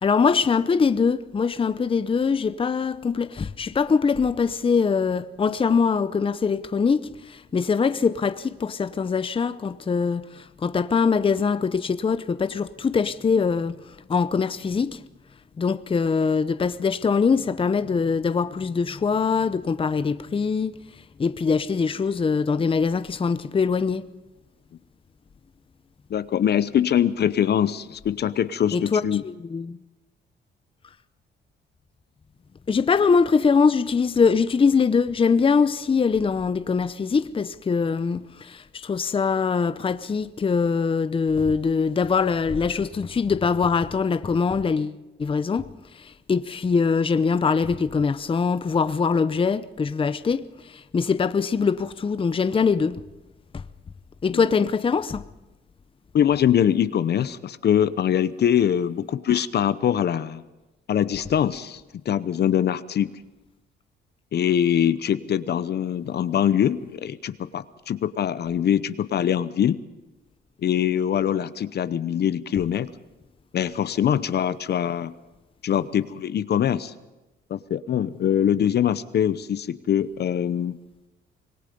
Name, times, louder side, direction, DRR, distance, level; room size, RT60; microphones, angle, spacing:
voice 1, 0.0-13.7 14.1-15.0 15.6-20.8 21.2-24.0 28.7-29.8 32.7-45.7 46.0-53.0 53.5-53.6 54.2-55.2, left 5 dB, 25° left, 0.7 m, -23 dB
voice 2, 26.1-29.2 54.3-54.5 56.1-60.4 60.9-63.1 64.3-69.8 70.6-72.9 73.5-75.1 75.6-76.9 77.5-80.8, left 9 dB, 55° left, 0.8 m, -23 dB
26.0 x 19.5 x 5.3 m
cardioid pair, 90°, 20 cm